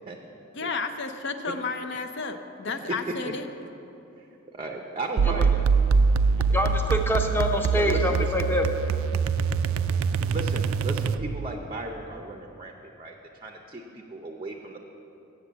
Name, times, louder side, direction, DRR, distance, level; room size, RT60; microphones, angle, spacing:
voice 1, 0.5-3.5, left 4 dB, 55° left, 7 dB, 0.6 m, -32 dB
voice 2, 4.5-5.6 6.5-6.7 7.8-8.4 10.3-13.1 13.4-14.8, right 2 dB, 25° right, 2 dB, 0.5 m, -36 dB
sound 1, 5.2-11.5, right 5 dB, 75° right, 0.3 m, -24 dB
voice 3, 6.5-8.7, left 1 dB, 10° left, 4 dB, 0.6 m, -25 dB
8.2 x 7.9 x 7.3 m, 2.9 s
head